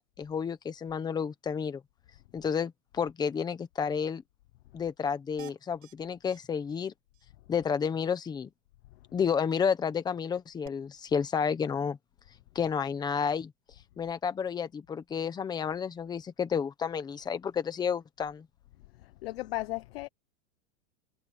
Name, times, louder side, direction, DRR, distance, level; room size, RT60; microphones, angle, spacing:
voice 1, 0.0-1.8 2.3-4.2 4.7-6.9 7.5-8.5 9.1-12.0 12.5-13.5 14.0-18.5, left 6 dB, 10° left, 1.1 m, -31 dB
sound 1, 5.4-5.9 6.3-6.4 6.7-6.8 7.1-7.3 10.6-10.7, right 13 dB, 70° right, 4.2 m, -49 dB
voice 2, 19.0-20.1, left 19 dB, 45° left, 0.8 m, -36 dB
supercardioid pair, 170°, 41 cm